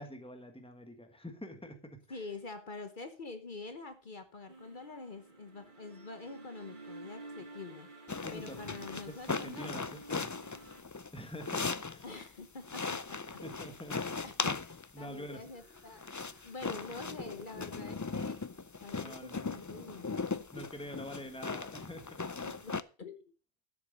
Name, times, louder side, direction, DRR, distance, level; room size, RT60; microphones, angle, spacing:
voice 1, 0.0-2.3 8.1-10.3 11.1-12.1 13.4-14.1 14.9-15.5 18.9-19.4 20.5-22.2, equal, 5° left, 1.5 m, -46 dB
voice 2, 2.1-7.9 8.3-9.9 12.0-13.4 14.0-16.1 16.4-18.4 18.8-20.1 21.5-21.7 22.4-23.3, left 3 dB, 55° left, 1.2 m, -46 dB
sound 1, 4.5-10.8, right 2 dB, 50° right, 2.1 m, -51 dB
sound 2, 8.1-12.3 12.6-15.0 15.7-22.8, left 4 dB, 30° left, 0.3 m, -38 dB
sound 3, 15.0-20.5, right 1 dB, 75° right, 4.1 m, -67 dB
12.0 x 7.4 x 5.2 m
omnidirectional pair, 1.1 m